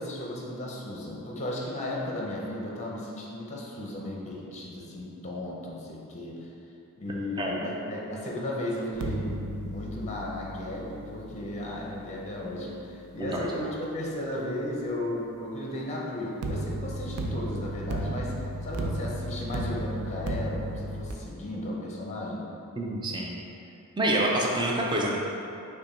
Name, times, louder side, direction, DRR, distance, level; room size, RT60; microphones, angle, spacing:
voice 1, 0.0-6.5 7.0-22.5, left 1 dB, 30° left, -3 dB, 0.7 m, -35 dB
sound 1, 8.9-14.0 16.4-21.1, right 1 dB, 85° right, 0.4 m, -35 dB
voice 2, 13.2-13.7 22.8-23.4 24.0-25.2, right 1 dB, 20° right, -2 dB, 0.5 m, -27 dB
5.5 x 2.2 x 4.2 m, 2.8 s
head